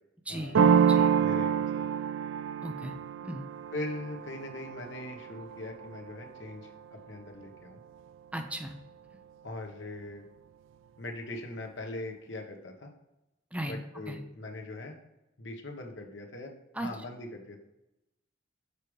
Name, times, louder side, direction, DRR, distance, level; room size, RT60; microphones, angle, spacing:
voice 1, 0.3-0.8 1.2-1.8 3.7-7.8 9.4-10.2 11.0-12.9 13.6-15.0 15.4-17.6, left 2 dB, 70° left, 2 dB, 1.1 m, -41 dB
sound 1, 0.5-6.1, right 7 dB, 80° right, 0.3 m, -27 dB
voice 2, 2.6-2.9 3.2-3.5 8.3-8.7 13.5-13.8 14.1-14.2 16.7-16.9, right 1 dB, 5° right, 5 dB, 0.5 m, -36 dB
6.7 x 4.9 x 3.2 m, 0.92 s
head